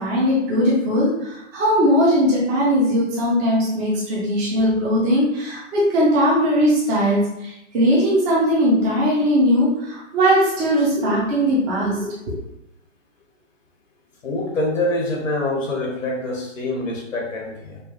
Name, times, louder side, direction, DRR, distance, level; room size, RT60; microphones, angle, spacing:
voice 1, 0.0-12.1, equal, 10° right, -6 dB, 0.5 m, -19 dB
voice 2, 14.2-17.8, left 2 dB, 85° left, 0 dB, 1.5 m, -25 dB
5.3 x 2.4 x 3.1 m, 0.82 s
hypercardioid pair, 150°, 38 cm